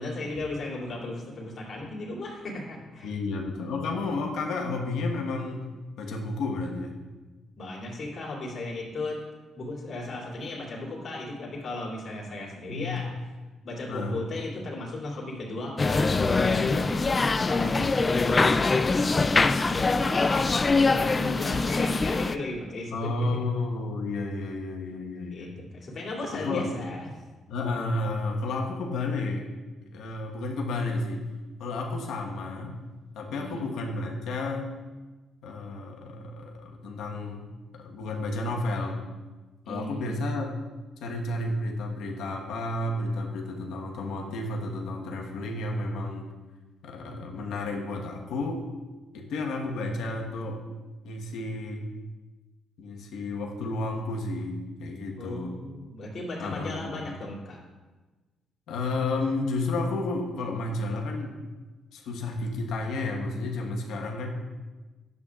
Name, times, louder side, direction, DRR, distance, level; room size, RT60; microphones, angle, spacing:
voice 1, 0.0-3.1 7.6-9.2 9.6-13.1 13.6-23.3 25.3-25.5 25.7-27.1 33.3-33.6 39.6-40.1 55.2-57.6, left 2 dB, 50° left, -5 dB, 2.7 m, -36 dB
voice 2, 3.0-5.7 6.0-7.0 12.7-13.0 13.9-14.2 22.9-25.5 26.3-26.8 27.5-29.5 29.9-31.2 31.6-32.8 33.1-34.7 35.4-37.5 37.8-39.0 39.7-40.5 41.0-46.3 46.8-48.6 49.1-50.6 51.0-51.9 52.8-55.5 56.4-57.2 58.7-61.4 61.9-64.3, left 2 dB, 80° left, 0 dB, 1.3 m, -31 dB
sound 1, 15.8-22.4, left 3 dB, 30° left, 0.3 m, -23 dB
11.0 x 8.1 x 2.4 m, 1.2 s
cardioid pair, 90°, 0 cm